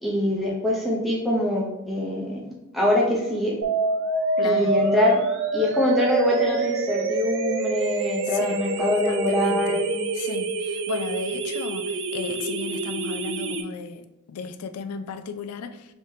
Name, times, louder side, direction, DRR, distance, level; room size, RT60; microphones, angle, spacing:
voice 1, 0.0-3.6 4.4-5.2 5.5-10.0, left 1 dB, ahead, -4 dB, 0.6 m, -24 dB
sound 1, 3.6-13.6, right 2 dB, 55° right, 0.4 m, -26 dB
voice 2, 4.4-4.8 8.2-8.6 9.1-9.9 10.1-14.0 14.3-15.9, left 6 dB, 90° left, 9 dB, 0.4 m, -35 dB
4.8 x 3.6 x 2.7 m, 1.0 s
head